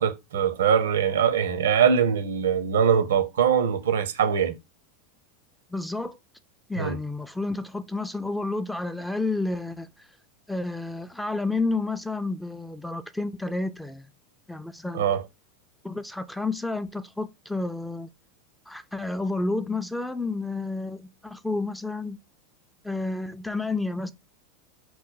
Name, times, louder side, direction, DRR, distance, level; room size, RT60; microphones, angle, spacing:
voice 1, 0.0-4.5 6.8-7.0 14.9-15.2, right 7 dB, 85° right, 0.6 m, -22 dB
voice 2, 5.7-6.2 6.7-9.9 10.5-14.1 14.5-15.0 15.8-18.1 18.7-22.2 22.8-24.1, left 3 dB, 5° left, 0.3 m, -30 dB
3.0 x 2.1 x 3.9 m
hypercardioid pair, 105°, 0 cm